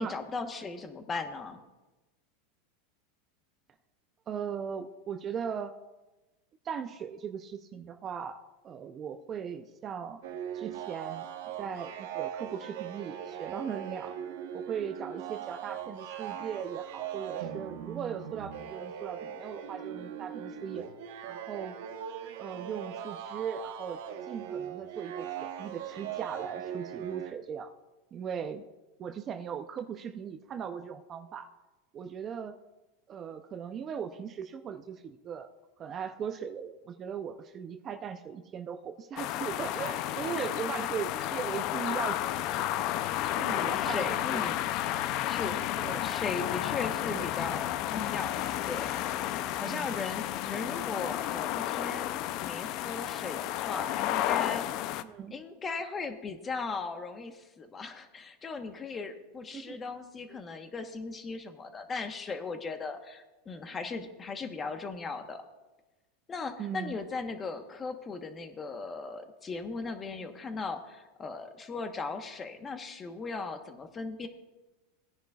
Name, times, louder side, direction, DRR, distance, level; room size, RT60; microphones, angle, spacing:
voice 1, 0.0-1.6 40.3-40.5 41.1-41.3 43.7-44.7 45.2-45.6 46.0-49.0 49.6-54.8 55.3-65.4 66.3-74.3, left 4 dB, 20° left, 7 dB, 1.1 m, -38 dB
voice 2, 4.3-5.7 6.6-10.2 10.5-11.3 11.6-14.2 14.5-20.9 21.2-21.8 22.4-24.0 24.3-27.7 28.1-28.6 29.0-31.5 31.9-32.6 33.1-35.5 35.8-42.9 43.3-44.5 44.8-45.0 45.8-46.0 46.4-46.5 47.1-47.3 49.6-49.9 55.0-55.3 59.5-59.8 60.3-60.4 66.6-66.9, right 7 dB, 30° right, 7 dB, 0.6 m, -38 dB
sound 1, 10.2-27.3, right 9 dB, 70° right, 1.0 m, -40 dB
sound 2, 39.2-55.0, left 13 dB, 50° left, 0.5 m, -32 dB
18.0 x 10.0 x 2.4 m, 1.1 s
supercardioid pair, 135°, 0 cm